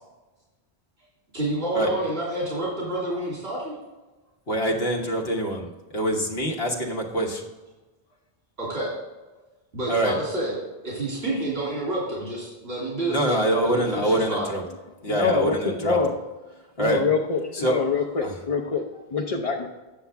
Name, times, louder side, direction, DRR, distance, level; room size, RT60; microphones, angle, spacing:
voice 1, 1.3-3.8 8.6-8.9 9.7-10.6 10.8-14.5, right 1 dB, 80° right, -6 dB, 3.1 m, -29 dB
voice 2, 4.5-7.4 9.9-10.1 13.1-14.6 15.0-16.0 16.8-17.0 17.5-17.7 18.2-18.3, right 1 dB, 75° left, -1 dB, 1.6 m, -25 dB
voice 3, 15.1-16.1 16.8-19.7, left 5 dB, 40° left, 0 dB, 0.7 m, -25 dB
9.6 x 6.9 x 3.5 m, 1.2 s
omnidirectional pair, 1.0 m